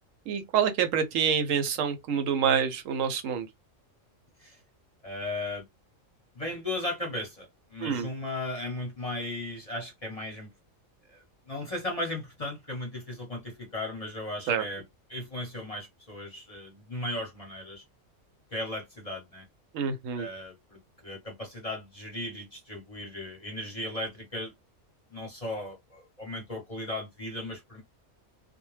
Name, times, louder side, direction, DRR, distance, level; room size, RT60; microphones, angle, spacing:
voice 1, 0.3-3.5 7.8-8.1 14.5-14.6 19.7-20.3, right 7 dB, 80° right, 0.9 m, -27 dB
voice 2, 5.0-5.6 6.3-10.5 11.1-14.8 15.1-17.8 18.5-19.5 20.1-24.5 25.1-27.8, left 1 dB, 35° left, 0.7 m, -36 dB
2.2 x 2.1 x 3.1 m
omnidirectional pair, 1.4 m